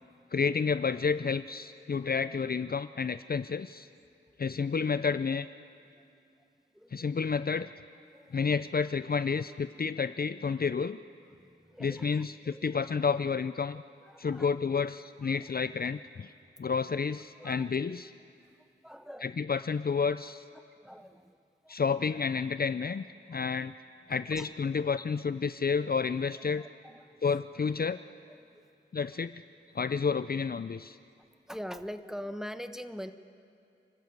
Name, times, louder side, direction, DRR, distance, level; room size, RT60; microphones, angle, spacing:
voice 1, 0.3-3.9 4.4-5.5 6.9-7.7 8.3-11.0 11.8-13.8 14.2-16.3 16.6-18.1 19.2-20.4 21.7-23.0 23.3-23.7 24.1-26.7 27.2-28.0 28.9-29.4 29.7-31.0, left 5 dB, 50° left, 13 dB, 0.5 m, -30 dB
voice 2, 6.7-7.1 8.1-8.4 11.3-12.7 14.0-14.5 15.2-15.4 17.4-17.7 18.4-19.3 20.5-21.4 21.6-21.8 23.3-23.6 24.3-24.5 26.6-27.3 28.2-28.7 31.5-33.1, equal, ahead, 9 dB, 1.2 m, -44 dB
30.0 x 12.5 x 8.0 m, 2.5 s
cardioid pair, 45°, 20 cm